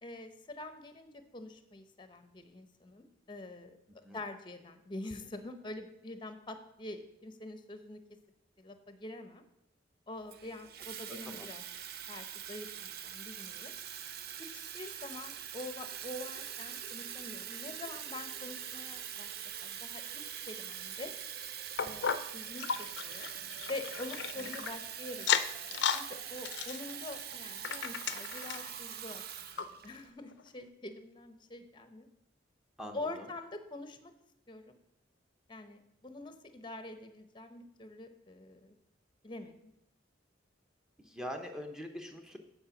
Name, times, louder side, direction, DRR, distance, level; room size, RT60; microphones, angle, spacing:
voice 1, 0.0-3.7 4.1-8.0 8.6-9.4 10.1-11.6 12.1-13.7 14.5-19.3 19.6-21.1 21.8-22.1 22.3-22.7 23.0-23.3 23.7-25.3 25.6-32.1 32.9-34.1 34.5-34.7 35.5-38.8 39.2-39.7, left 2 dB, 25° left, 9 dB, 0.7 m, -45 dB
Water tap faucet / Fill (with liquid), 10.3-30.1, right 9 dB, 55° right, 0.6 m, -43 dB
sound 1, 21.8-24.8 25.2-26.1 26.4-28.7 29.2-29.3 29.6-29.7 30.3-30.4, left 7 dB, 65° left, 0.5 m, -34 dB
voice 2, 41.1-42.4, equal, 5° right, 3 dB, 0.8 m, -42 dB
8.6 x 4.5 x 7.0 m, 0.81 s
head